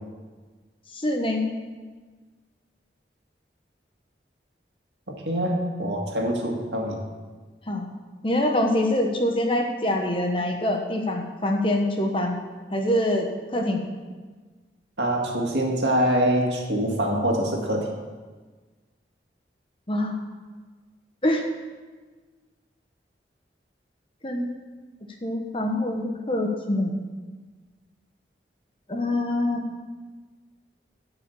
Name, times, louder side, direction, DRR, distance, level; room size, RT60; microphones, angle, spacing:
voice 1, 0.9-1.5 7.7-7.9 8.2-12.4 12.7-13.3 13.5-13.8 19.9-20.2 21.2-21.4 24.2-24.5 25.2-26.9 28.9-29.6, left 1 dB, 30° left, 3 dB, 1.1 m, -24 dB
voice 2, 5.3-7.0 15.0-17.9, equal, 80° right, 0 dB, 2.0 m, -24 dB
12.5 x 5.0 x 6.9 m, 1.4 s
head